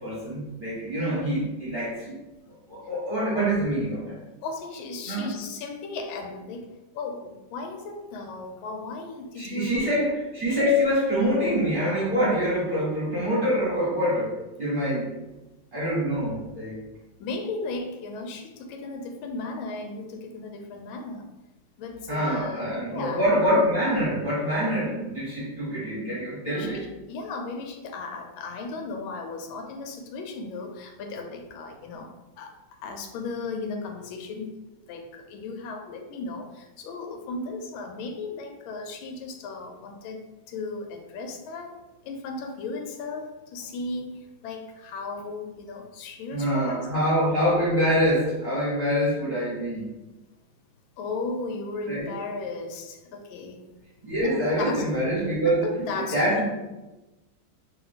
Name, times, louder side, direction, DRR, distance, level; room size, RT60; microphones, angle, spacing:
voice 1, 0.0-2.1 2.7-4.2 5.1-5.3 9.4-14.3 14.6-15.2 15.7-16.7 22.1-26.8 46.3-49.9 51.9-52.0 54.0-55.7 56.1-56.4, equal, 30° right, -9 dB, 1.1 m, -25 dB
voice 2, 4.4-6.7 6.9-9.9 17.2-21.3 21.8-23.3 26.4-26.8 27.1-32.5 32.8-34.6 34.9-40.2 40.5-41.8 42.0-46.8 51.0-53.6 54.2-54.9 55.4-56.4, left 3 dB, 85° left, 4 dB, 1.4 m, -35 dB
2.9 x 2.9 x 4.0 m, 1.1 s
omnidirectional pair, 2.2 m